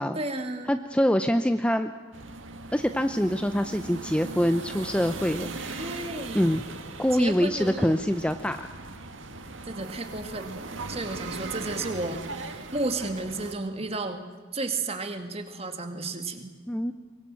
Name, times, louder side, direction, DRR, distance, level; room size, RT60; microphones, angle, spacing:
voice 1, 0.1-0.7 5.8-6.5 7.1-8.2 9.7-10.5 10.9-14.2 14.5-16.5, right 2 dB, 30° right, 7 dB, 2.1 m, -33 dB
voice 2, 0.7-1.9 2.7-5.9 6.3-6.6 7.0-8.7 16.7-16.9, equal, 5° left, 8 dB, 0.6 m, -25 dB
sound 1, 2.1-13.5, right 3 dB, 75° right, 2.0 m, -39 dB
24.0 x 22.0 x 7.6 m, 1.4 s
head